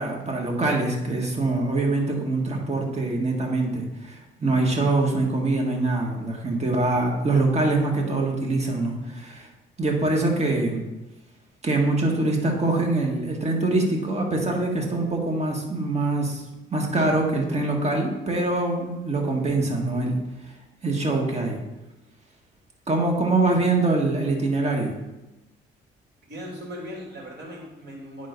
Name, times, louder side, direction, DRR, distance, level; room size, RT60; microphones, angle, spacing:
voice 1, 0.0-9.5 9.8-10.8 11.6-16.4 16.7-20.2 20.8-21.6 22.9-24.9, right 2 dB, 35° right, 1 dB, 1.6 m, -24 dB
voice 2, 26.3-28.3, equal, 60° right, -1 dB, 2.7 m, -38 dB
9.4 x 3.7 x 5.2 m, 1.0 s
cardioid pair, 90°, 20 cm